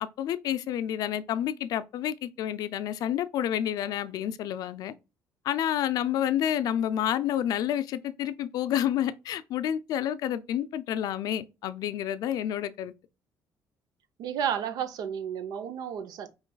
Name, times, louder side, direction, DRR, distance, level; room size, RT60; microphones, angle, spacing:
voice 1, 0.2-4.9 5.4-12.9, left 10 dB, 70° left, 0.4 m, -29 dB
voice 2, 14.2-16.3, right 8 dB, 75° right, 0.6 m, -32 dB
5.2 x 3.1 x 2.2 m
cardioid pair, 145°, 7 cm